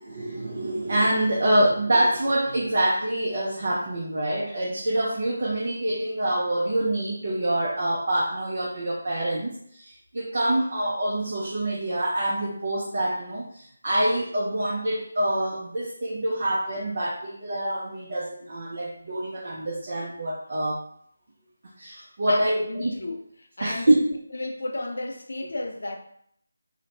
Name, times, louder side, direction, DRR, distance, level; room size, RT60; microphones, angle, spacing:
voice 1, 0.0-20.8 21.8-22.9 23.6-24.1, right 1 dB, 50° right, -2 dB, 0.5 m, -26 dB
voice 2, 22.3-24.0 24.3-26.0, left 2 dB, 60° left, 3 dB, 0.5 m, -33 dB
2.9 x 2.0 x 2.8 m, 0.65 s
figure-of-eight pair, 155°, 0 cm